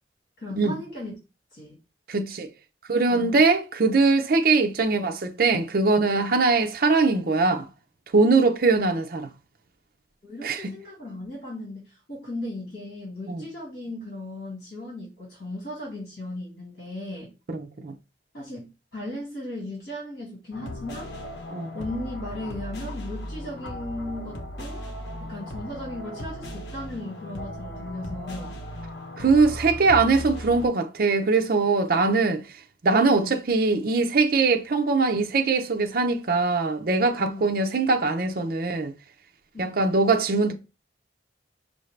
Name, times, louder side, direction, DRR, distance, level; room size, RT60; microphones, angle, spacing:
voice 1, 0.4-1.1 1.5-1.8 3.1-3.4 10.2-17.3 18.3-21.1 21.7-24.8 25.3-28.5 29.4-29.6 33.1-33.4 37.2-37.4 39.5-39.9, left 1 dB, 50° left, 2.4 m, -37 dB
voice 2, 2.1-2.5 2.9-7.7 8.1-9.3 10.4-10.7 13.3-13.4 17.5-17.9 21.5-21.7 29.2-32.4 32.8-38.9 39.6-40.5, right 3 dB, 50° right, 0.5 m, -22 dB
sound 1, 20.5-30.7, left 1 dB, 70° left, 0.9 m, -37 dB
5.5 x 2.6 x 3.2 m
head